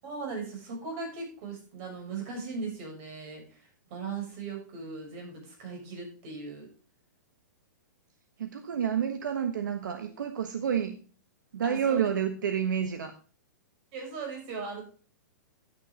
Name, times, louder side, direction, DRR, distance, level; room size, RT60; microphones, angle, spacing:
voice 1, 0.0-6.7 11.6-12.1 13.9-14.8, right 4 dB, 45° right, 1 dB, 6.6 m, -38 dB
voice 2, 8.4-11.0 11.5-13.1, right 8 dB, 80° right, 7 dB, 1.3 m, -29 dB
10.5 x 9.3 x 3.8 m, 0.39 s
hypercardioid pair, 140°, 10 cm